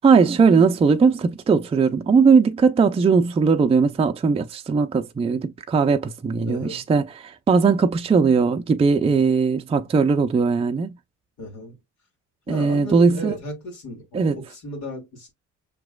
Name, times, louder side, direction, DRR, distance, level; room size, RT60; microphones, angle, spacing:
voice 1, 0.0-10.9 12.5-13.3 14.1-14.4, right 5 dB, 20° right, 0.5 m, -19 dB
voice 2, 6.5-6.9 11.4-11.8 12.5-15.3, left 1 dB, 75° left, 2.1 m, -35 dB
5.9 x 3.0 x 2.3 m
cardioid pair, 90°, 31 cm